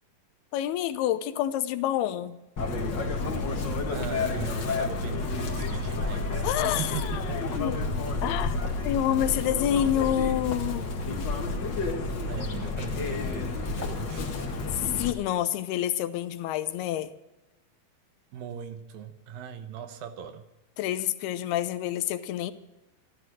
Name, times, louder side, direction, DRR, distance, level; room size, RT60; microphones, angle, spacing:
voice 1, 0.5-2.4 6.4-7.9 8.2-8.6 8.8-10.9 14.7-17.1 20.8-22.5, left 11 dB, 90° left, 12 dB, 2.8 m, -28 dB
Chirp tweet, 2.6-15.1, left 3 dB, 45° left, 1.5 m, -30 dB
voice 2, 3.9-7.6 12.3-14.2 18.3-20.4, right 8 dB, 75° right, 9 dB, 2.5 m, -39 dB
14.0 x 13.0 x 6.2 m, 0.97 s
omnidirectional pair, 4.4 m